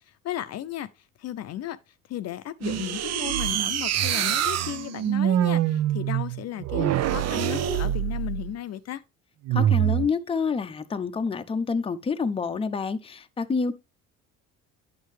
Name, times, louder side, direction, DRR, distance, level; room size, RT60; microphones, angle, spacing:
voice 1, 0.1-0.9 1.2-1.8 2.1-9.0, left 12 dB, 55° left, 0.6 m, -35 dB
sound 1, 2.6-8.6 9.5-10.1, right 11 dB, 55° right, 0.6 m, -25 dB
voice 2, 9.5-13.7, left 5 dB, 20° left, 0.6 m, -28 dB
9.5 x 6.4 x 3.2 m
cardioid pair, 100°, 31 cm